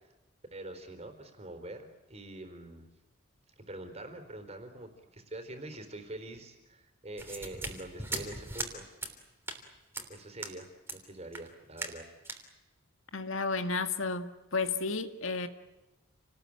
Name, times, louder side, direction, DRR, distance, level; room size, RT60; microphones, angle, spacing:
voice 1, 0.5-2.9 3.6-8.9 10.1-12.0, right 1 dB, 30° right, 8 dB, 4.1 m, -45 dB
sound 1, 7.2-8.7 9.0-9.1 9.5-9.6 9.9-10.1 10.4-10.6 10.9-11.0 11.3-11.5 11.8-12.0 12.3-12.4, right 2 dB, 10° right, 3.3 m, -39 dB
voice 2, 13.1-15.5, left 4 dB, 75° left, 8 dB, 2.0 m, -32 dB
29.5 x 19.5 x 8.9 m, 1.0 s
head